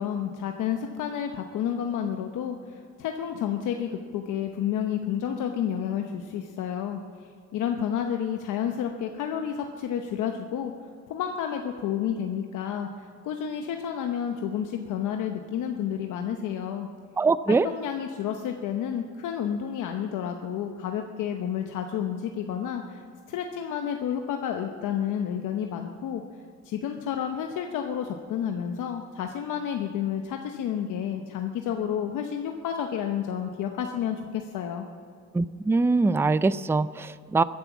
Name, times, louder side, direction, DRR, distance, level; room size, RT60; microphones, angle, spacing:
voice 1, 0.0-7.0 7.5-10.7 11.1-16.9 17.5-26.2 26.6-34.9, left 9 dB, 85° left, 4 dB, 1.0 m, -30 dB
voice 2, 17.2-17.7 35.3-37.4, right 3 dB, 10° right, 16 dB, 0.4 m, -23 dB
16.0 x 10.5 x 7.1 m, 2.2 s
cardioid pair, 90°, 30 cm